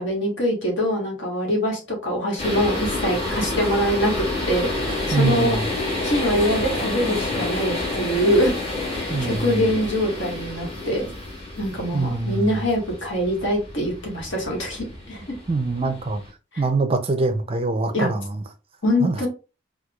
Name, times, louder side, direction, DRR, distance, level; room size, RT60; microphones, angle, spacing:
voice 1, 0.0-5.6 6.0-8.5 8.9-11.1 11.6-15.4 16.5-16.6 17.9-18.1 18.8-19.3, equal, 70° left, 1.4 m, -24 dB
sound 1, 2.4-16.3, left 2 dB, 30° left, 1.3 m, -29 dB
voice 2, 5.1-5.7 9.1-9.7 11.9-12.6 15.5-16.2 16.6-18.4 19.0-19.3, right 3 dB, 30° right, 0.4 m, -24 dB
4.4 x 2.3 x 2.3 m
head